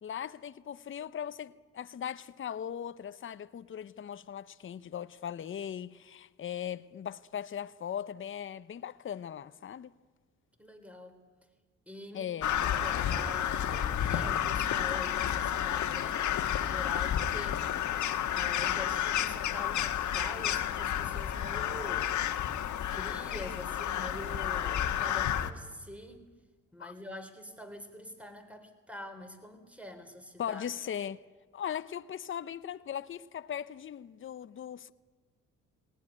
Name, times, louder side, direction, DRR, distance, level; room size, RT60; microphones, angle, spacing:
voice 1, 0.0-9.9 12.1-12.5 26.8-26.9 30.4-31.2 31.5-34.9, left 9 dB, 40° left, 0.8 m, -39 dB
voice 2, 10.6-11.2 11.9-17.6 18.3-22.2 22.8-26.2 26.7-30.6, left 1 dB, 5° right, 3.4 m, -45 dB
Crow, 12.4-25.5, left 10 dB, 70° left, 1.5 m, -31 dB
19.5 x 18.5 x 9.9 m
cardioid pair, 90°, 30 cm